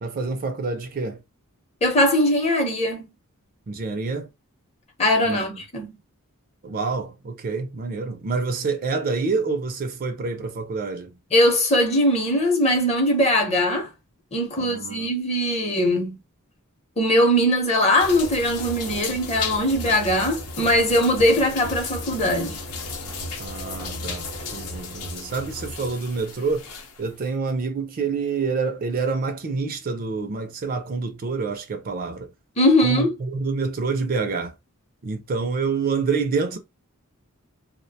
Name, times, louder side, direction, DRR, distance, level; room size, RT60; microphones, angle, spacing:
voice 1, 0.0-1.2 3.7-4.3 5.2-5.5 6.6-11.2 14.6-15.1 23.4-26.6 27.0-32.3 32.8-34.5 35.0-36.6, right 4 dB, 40° right, 0.4 m, -27 dB
voice 2, 1.8-3.1 5.0-6.0 11.3-13.9 14.3-16.1 17.0-22.6 32.6-33.2, left 1 dB, 30° left, 0.7 m, -20 dB
sound 1, 18.0-27.1, left 3 dB, 85° left, 0.7 m, -34 dB
2.4 x 2.1 x 2.7 m
head